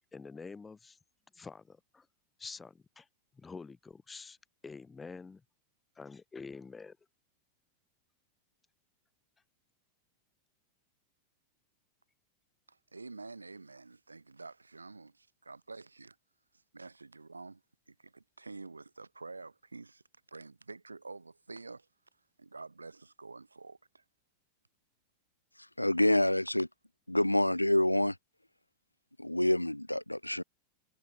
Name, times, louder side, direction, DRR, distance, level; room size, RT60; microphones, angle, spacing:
voice 1, 0.1-1.0 1.3-2.1 2.4-3.1 3.3-4.4 4.6-5.4 6.0-7.0, left 4 dB, 15° left, 2.9 m, -47 dB
voice 2, 12.7-16.2 16.7-20.0 20.3-21.9 22.4-24.0, right 3 dB, 80° right, 3.2 m, -48 dB
voice 3, 25.8-26.7 27.1-28.2 29.2-30.4, left 1 dB, 85° left, 0.4 m, -27 dB
figure-of-eight pair, 90°, 0 cm